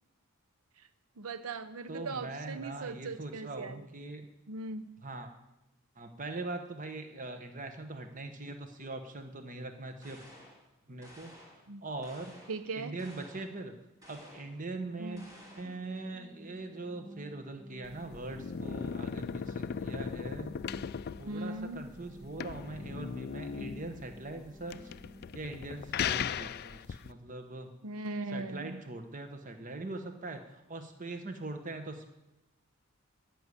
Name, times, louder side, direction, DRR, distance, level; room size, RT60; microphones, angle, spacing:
voice 1, 1.2-3.8 4.5-4.9 11.7-11.8 12.5-13.0 15.0-15.3 21.3-21.8 27.8-28.8, right 3 dB, 80° right, 12 dB, 0.7 m, -39 dB
voice 2, 1.9-4.3 5.0-5.3 6.0-10.2 10.9-12.4 12.7-13.7 14.1-15.2 15.6-20.5 21.2-24.9 25.3-27.7 28.3-32.1, right 2 dB, 35° right, 6 dB, 1.1 m, -42 dB
sound 1, 10.0-10.6 11.0-11.6 12.0-12.6 13.0-13.5 14.0-14.6 15.2-15.8, equal, 15° right, 2.7 m, -54 dB
sound 2, 15.3-25.3, left 1 dB, 10° left, 3.7 m, -53 dB
sound 3, 17.8-27.1, left 7 dB, 45° left, 0.3 m, -38 dB
13.5 x 6.4 x 9.6 m, 0.95 s
head